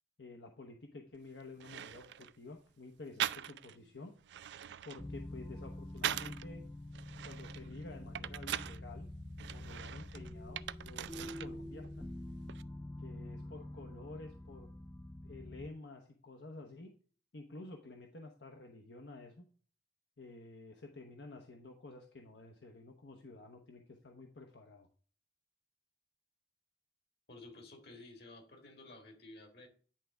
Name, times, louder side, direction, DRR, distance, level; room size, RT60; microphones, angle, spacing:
voice 1, 0.2-4.1 4.8-6.6 7.2-9.1 9.5-12.0 13.0-14.7 15.2-16.9 17.3-19.4 20.2-24.9, left 2 dB, 85° left, 0.9 m, -51 dB
sound 1, 1.1-1.2 1.6-2.4 3.2-3.8 4.2-6.5 6.9-8.8 9.4-11.5 11.8-12.6, right 10 dB, 80° right, 0.3 m, -41 dB
sound 2, 5.0-15.7, left 1 dB, 10° left, 0.4 m, -46 dB
voice 2, 27.3-29.7, left 2 dB, 65° left, 2.0 m, -53 dB
10.0 x 3.4 x 4.9 m
head